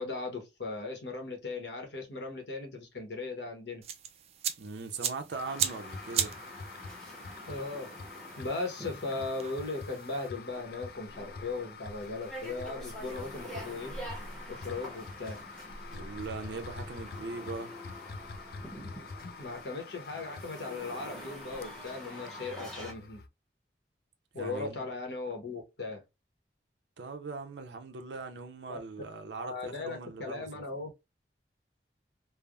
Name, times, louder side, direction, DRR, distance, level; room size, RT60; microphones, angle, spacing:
voice 1, 0.0-3.8 7.5-7.9 8.4-13.9 14.5-15.4 19.4-23.2 24.3-26.0 28.7-28.8 29.3-30.9, left 3 dB, 80° left, 1.0 m, -38 dB
sound 1, 3.8-10.3, right 9 dB, 35° right, 0.3 m, -38 dB
voice 2, 4.6-6.4 15.9-17.7 24.4-24.9 27.0-30.6, right 4 dB, 80° right, 0.6 m, -40 dB
sound 2, 5.3-23.3, left 3 dB, 55° left, 0.3 m, -46 dB
sound 3, 5.5-22.9, equal, 5° left, 0.8 m, -47 dB
3.3 x 2.0 x 2.3 m
head